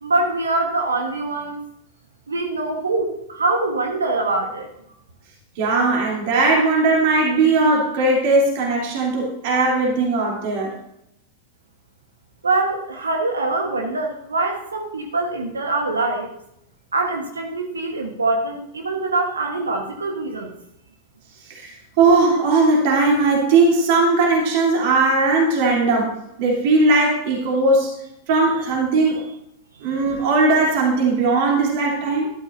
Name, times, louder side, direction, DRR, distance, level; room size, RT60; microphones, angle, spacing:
voice 1, 0.0-1.6 2.3-4.7 12.4-16.3 16.9-20.5, right 2 dB, 75° right, 3 dB, 1.3 m, -23 dB
voice 2, 5.6-10.7 21.5-26.1 26.4-27.9 28.3-29.3 29.8-32.3, right 3 dB, 50° right, -2 dB, 3.1 m, -18 dB
13.0 x 12.5 x 2.7 m, 0.79 s
figure-of-eight pair, 90°, 0 cm